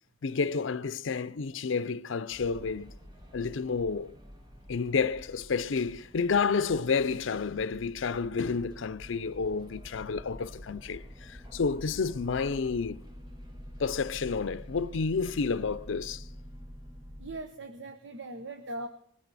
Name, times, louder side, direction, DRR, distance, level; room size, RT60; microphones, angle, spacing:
voice 1, 0.2-2.9 3.3-4.1 4.7-13.0 13.8-16.2, left 5 dB, 85° left, 0.5 m, -30 dB
sound 1, 2.3-17.4, equal, 25° right, 1.6 m, -47 dB
voice 2, 17.2-18.9, right 2 dB, 70° right, 0.9 m, -40 dB
20.5 x 15.0 x 4.1 m
head